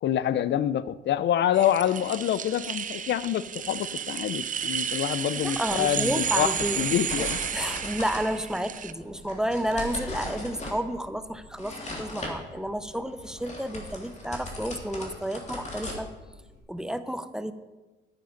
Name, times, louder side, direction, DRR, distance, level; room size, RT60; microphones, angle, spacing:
voice 1, 0.0-7.4, left 11 dB, 65° left, 17 dB, 0.5 m, -26 dB
sound 1, 1.5-8.9, right 8 dB, 40° right, 0.5 m, -32 dB
sound 2, 5.4-16.6, left 1 dB, 35° left, 3.2 m, -39 dB
voice 2, 5.4-6.8 7.2-16.1 16.7-17.5, equal, 5° right, 11 dB, 0.7 m, -31 dB
10.5 x 9.9 x 5.2 m, 1.2 s
cardioid pair, 90°, 20 cm